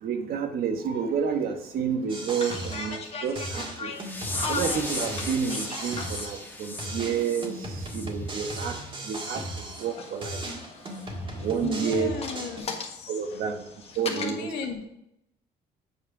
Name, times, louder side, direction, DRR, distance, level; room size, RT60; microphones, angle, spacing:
voice 1, 0.0-3.9 4.5-8.8 9.1-10.4 11.4-12.1 13.1-13.6 14.0-14.5, right 6 dB, 65° right, 6 dB, 1.2 m, -30 dB
sound 1, 0.8-0.9 1.3-1.6 2.3-6.4 7.4-9.1 9.5-14.3, left 4 dB, 35° left, 1.3 m, -39 dB
sound 2, 2.1-3.1 3.4-6.5 6.8-10.0 10.2-12.6, right 1 dB, 30° right, 1.8 m, -36 dB
sound 3, 3.9-8.7 9.0-9.3 9.7-9.9 10.3-10.5 10.9-11.0, left 2 dB, 10° left, 1.3 m, -37 dB
voice 2, 11.6-13.5 14.1-14.9, left 4 dB, 85° left, 3 dB, 1.5 m, -36 dB
8.3 x 4.9 x 4.8 m, 0.80 s
cardioid pair, 110°, 17 cm